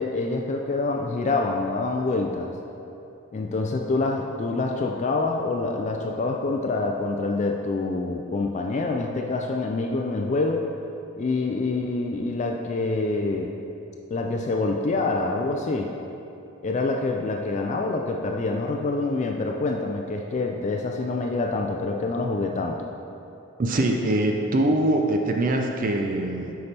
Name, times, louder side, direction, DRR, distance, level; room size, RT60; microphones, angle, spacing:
voice 1, 0.0-2.5 3.3-10.7 11.2-13.6 14.1-15.9 16.6-22.8, left 3 dB, 35° left, 2 dB, 0.3 m, -26 dB
voice 2, 23.6-26.5, right 1 dB, 40° right, 2 dB, 0.4 m, -23 dB
8.1 x 5.6 x 3.3 m, 2.9 s
head